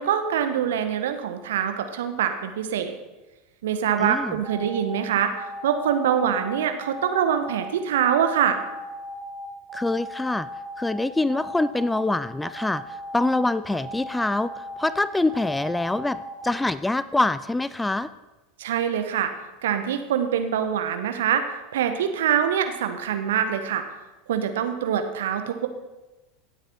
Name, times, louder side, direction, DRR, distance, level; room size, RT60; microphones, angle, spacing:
voice 1, 0.0-2.9 3.6-8.6 18.6-19.3 19.6-21.4 21.7-23.8 24.3-25.7, right 9 dB, 65° right, 8 dB, 1.1 m, -24 dB
voice 2, 4.0-4.3 9.7-10.5 10.8-12.8 13.1-18.1, left 2 dB, 10° left, 16 dB, 0.4 m, -25 dB
sound 1, 4.4-16.5, right 1 dB, 35° right, 1.6 m, -37 dB
16.5 x 8.0 x 4.3 m, 1.1 s
figure-of-eight pair, 80°, 0 cm